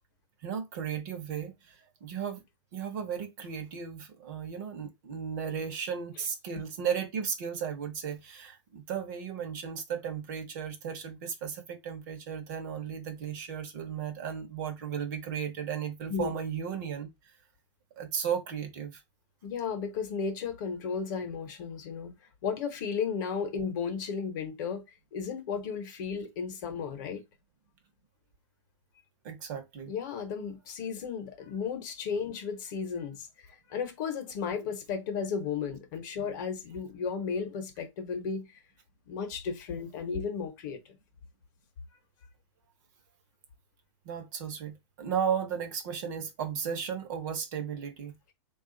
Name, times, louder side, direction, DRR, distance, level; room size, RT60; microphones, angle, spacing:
voice 1, 0.4-2.4 2.7-17.1 18.0-19.0 29.2-29.9 44.0-48.1, right 7 dB, 40° right, 0.9 m, -35 dB
voice 2, 19.4-22.2 22.4-24.8 25.1-27.2 29.9-33.3 33.7-38.5 39.1-41.0, left 6 dB, 40° left, 0.9 m, -34 dB
3.5 x 2.4 x 3.7 m
hypercardioid pair, 160°, 15 cm